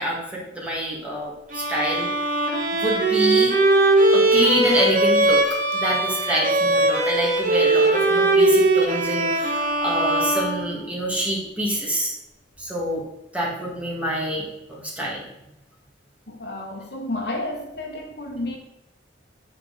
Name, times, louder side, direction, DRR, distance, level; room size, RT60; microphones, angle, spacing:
voice 1, 0.0-2.1 2.7-3.6 4.1-5.4 5.7-12.1 12.6-13.0 13.3-15.2, equal, 10° right, 1.9 m, -26 dB
Bowed string instrument, 1.5-11.2, right 2 dB, 45° right, 1.2 m, -20 dB
voice 2, 16.3-18.6, left 1 dB, 60° left, 1.1 m, -31 dB
8.6 x 4.4 x 4.0 m
head